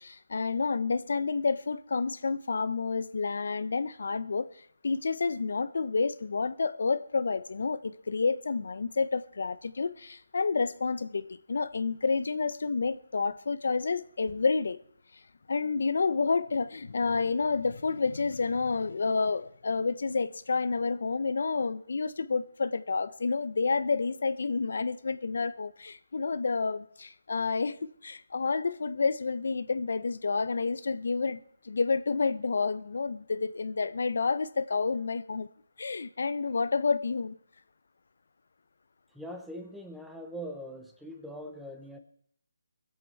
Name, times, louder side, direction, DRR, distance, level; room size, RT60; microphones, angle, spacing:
voice 1, 0.0-4.5 4.8-14.8 15.5-35.5 35.8-37.4, left 4 dB, 65° left, 0.7 m, -29 dB
voice 2, 39.1-42.0, equal, ahead, 0.8 m, -42 dB
22.0 x 8.0 x 4.5 m
hypercardioid pair, 165°, 0 cm